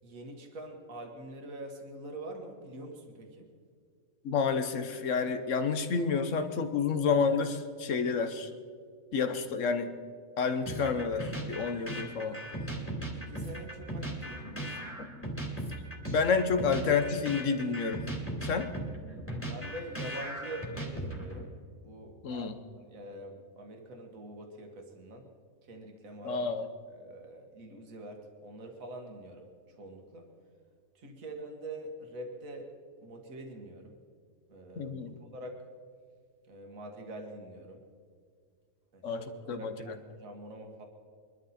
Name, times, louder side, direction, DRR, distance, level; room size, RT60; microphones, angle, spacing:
voice 1, 0.0-3.5 13.1-14.9 19.5-21.5 21.8-25.3 25.7-26.3 26.9-30.3 31.0-32.7 33.0-34.0 34.5-35.6 36.5-37.8 38.9-40.9, right 1 dB, 70° right, 3 dB, 2.0 m, -45 dB
voice 2, 4.2-8.5 9.1-9.9 10.4-12.4 16.1-18.1 18.4-18.7 22.2-22.5 26.2-26.7 34.8-35.1 39.0-39.9, left 5 dB, 60° left, 9 dB, 1.3 m, -29 dB
sound 1, 10.7-21.4, right 1 dB, 10° left, 2.6 m, -38 dB
23.0 x 12.5 x 4.2 m, 2.1 s
omnidirectional pair, 1.5 m